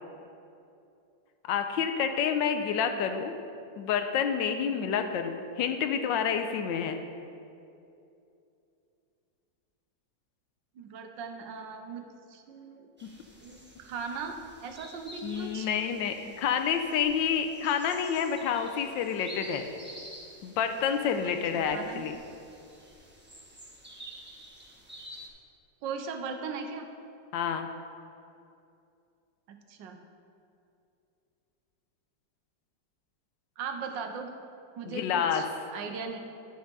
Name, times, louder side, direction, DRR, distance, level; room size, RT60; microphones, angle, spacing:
voice 1, 1.5-3.3 3.8-7.0 15.2-19.6 20.4-22.1 27.3-27.7 34.9-35.4, left 7 dB, 90° left, 7 dB, 1.3 m, -28 dB
voice 2, 10.7-12.9 13.4-14.4 14.6-15.7 21.5-22.0 25.8-26.9 29.5-30.0 33.6-34.3 34.7-35.5 35.7-36.2, right 5 dB, 80° right, 5 dB, 1.4 m, -38 dB
sound 1, 13.0-25.3, equal, 10° right, 0.8 m, -50 dB
10.5 x 4.9 x 5.3 m, 2.7 s
omnidirectional pair, 2.0 m